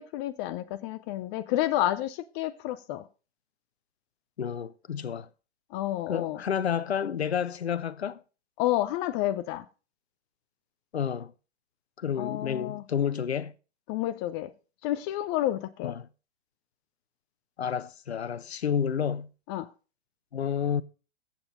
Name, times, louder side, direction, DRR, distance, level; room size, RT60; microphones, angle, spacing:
voice 1, 0.0-3.1 5.7-6.4 8.6-9.6 12.2-12.8 13.9-14.5 14.8-15.9 19.5-19.7, left 14 dB, 25° left, 0.6 m, -30 dB
voice 2, 4.4-5.3 6.1-8.2 10.9-11.3 12.0-13.5 15.8-16.1 17.6-19.3 20.3-20.8, left 8 dB, 80° left, 0.7 m, -30 dB
15.0 x 7.3 x 3.8 m
figure-of-eight pair, 115°, 32 cm